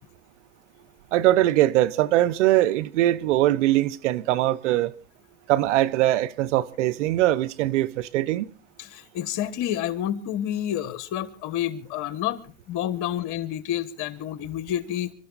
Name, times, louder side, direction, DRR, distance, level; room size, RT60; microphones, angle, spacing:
voice 1, 1.1-4.9 5.5-8.5, right 14 dB, 90° right, 0.9 m, -21 dB
voice 2, 8.8-12.4 12.7-15.1, left 11 dB, 60° left, 1.5 m, -29 dB
25.0 x 12.5 x 4.0 m
supercardioid pair, 95°, 35 cm